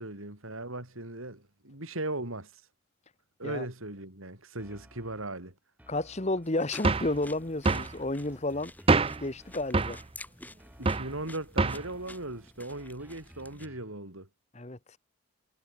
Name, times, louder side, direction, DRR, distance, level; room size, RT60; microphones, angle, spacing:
voice 1, 0.0-2.6 3.4-5.5 10.8-14.3, right 2 dB, 75° right, 5.8 m, -38 dB
sound 1, 4.6-5.4 5.8-6.6 7.0-10.2 10.6-11.4 11.8-14.0, equal, 10° right, 7.4 m, -57 dB
voice 2, 5.9-8.7 9.2-10.0 14.5-15.0, left 2 dB, 30° left, 1.3 m, -32 dB
sound 2, 6.4-13.7, left 2 dB, 10° left, 4.7 m, -50 dB
sound 3, 6.8-7.2 7.7-7.9 8.9-9.3 9.7-10.0 10.9-11.1 11.6-11.9, right 3 dB, 25° right, 0.6 m, -25 dB
head